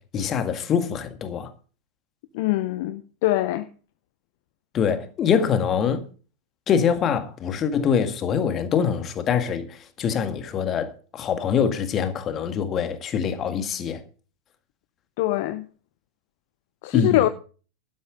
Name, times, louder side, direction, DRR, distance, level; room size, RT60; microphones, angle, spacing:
voice 1, 0.1-1.5 4.7-6.0 6.7-14.0 16.9-17.2, left 7 dB, 30° left, 1.8 m, -24 dB
voice 2, 2.3-3.7 15.2-15.7 16.8-17.3, left 16 dB, 50° left, 0.6 m, -23 dB
12.0 x 10.5 x 4.9 m
figure-of-eight pair, 90°, 0 cm